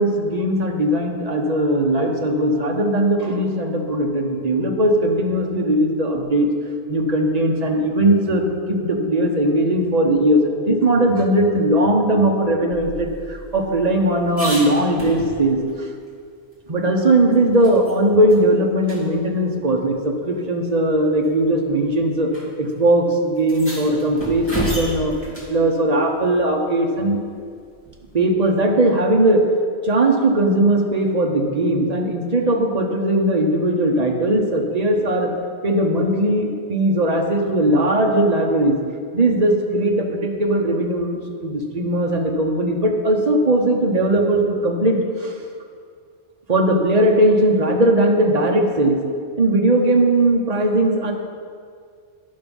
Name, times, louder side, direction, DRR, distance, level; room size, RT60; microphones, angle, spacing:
voice 1, 0.0-6.5 6.9-15.9 16.7-22.3 22.6-25.1 25.5-27.2 28.1-29.5 29.8-35.3 35.6-38.8 39.1-45.3 46.5-49.0 49.4-51.1, right 1 dB, 35° right, 2 dB, 1.0 m, -19 dB
sound 1, 12.7-15.7 16.1-16.2 16.5-18.0 18.3-18.4 18.8-19.0 20.0-20.1 21.0-21.3 22.3-22.4 22.7-22.8 23.4-25.6 27.8-28.3, right 1 dB, 10° left, 2.3 m, -32 dB
10.5 x 6.0 x 5.4 m, 2.1 s
omnidirectional pair, 1.2 m